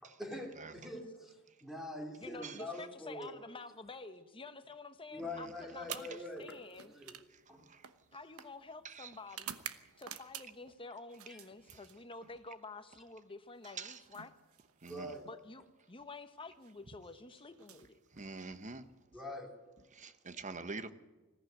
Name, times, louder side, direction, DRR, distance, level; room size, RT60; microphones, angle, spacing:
voice 1, 0.0-3.3 5.1-6.5 6.9-7.1 7.5-7.6 11.3-11.4 14.9-15.3 19.1-19.5, left 1 dB, ahead, 3.0 m, -44 dB
voice 2, 2.2-6.9 8.1-9.5 10.0-14.3 15.3-18.0 19.1-19.2, left 3 dB, 25° left, 1.2 m, -49 dB
sound 1, 5.8-10.7 11.1-12.4 13.6-15.4 16.5-16.7 17.5-18.7, right 9 dB, 65° right, 1.1 m, -50 dB
voice 3, 18.1-18.9 19.9-20.9, right 4 dB, 35° right, 1.0 m, -45 dB
20.5 x 15.0 x 9.3 m
head